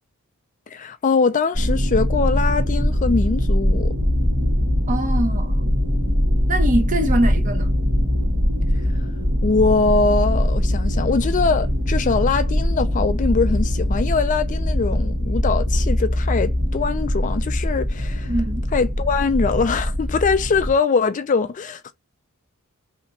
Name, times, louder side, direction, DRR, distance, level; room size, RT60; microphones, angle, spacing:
voice 1, 0.7-3.9 9.4-18.3 18.7-21.9, left 4 dB, 35° left, 0.4 m, -22 dB
sound 1, 1.5-20.7, equal, 55° right, 1.5 m, -21 dB
voice 2, 4.9-5.6 6.5-7.7 18.3-18.6, right 1 dB, 35° right, 0.9 m, -23 dB
3.3 x 2.9 x 4.2 m
head